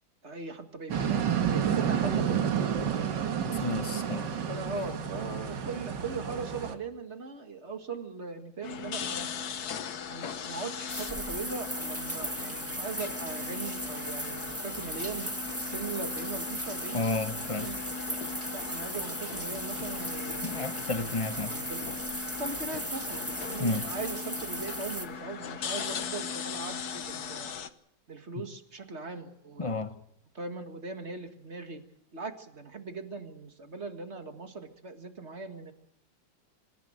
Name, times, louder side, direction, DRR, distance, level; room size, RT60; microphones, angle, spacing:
voice 1, 0.2-1.2 1.5-4.0 4.5-9.3 10.1-15.3 15.6-17.1 17.4-17.8 18.5-20.7 21.3-21.8 22.4-27.5 28.1-29.9 30.3-31.8 32.1-35.7, right 4 dB, 35° right, 2.0 m, -40 dB
sound 1, 0.9-6.7, right 8 dB, 65° right, 2.0 m, -30 dB
voice 2, 3.4-4.3 4.8-4.9 16.9-17.7 20.4-21.6 23.6-23.9 29.6-29.9, left 2 dB, 25° left, 0.7 m, -32 dB
sound 2, 8.6-27.7, left 6 dB, 55° left, 1.5 m, -39 dB
sound 3, 10.9-25.1, right 1 dB, 10° right, 1.6 m, -37 dB
26.0 x 15.0 x 7.9 m
omnidirectional pair, 2.1 m